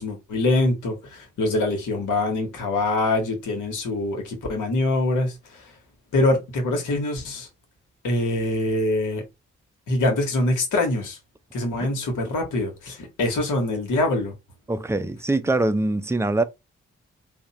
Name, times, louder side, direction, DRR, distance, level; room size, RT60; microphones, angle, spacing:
voice 1, 0.0-5.7 6.1-7.5 8.0-9.2 9.9-11.2 11.5-14.3, left 2 dB, 65° left, 1.2 m, -24 dB
voice 2, 14.7-16.4, right 2 dB, 10° right, 0.6 m, -23 dB
3.4 x 2.1 x 4.0 m
hypercardioid pair, 40°, 32 cm